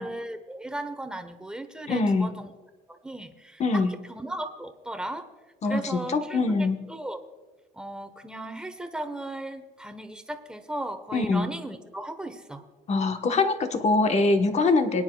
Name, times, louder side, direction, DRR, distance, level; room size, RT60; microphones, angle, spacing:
voice 1, 0.0-2.5 2.9-5.3 5.7-7.2 7.7-12.7, right 1 dB, 5° right, 7 dB, 1.0 m, -36 dB
voice 2, 1.9-2.3 3.6-3.9 5.6-6.8 11.1-11.5 12.9-15.0, left 3 dB, 40° left, 7 dB, 1.1 m, -23 dB
24.0 x 9.8 x 2.3 m, 1.2 s
cardioid pair, 110°, 17 cm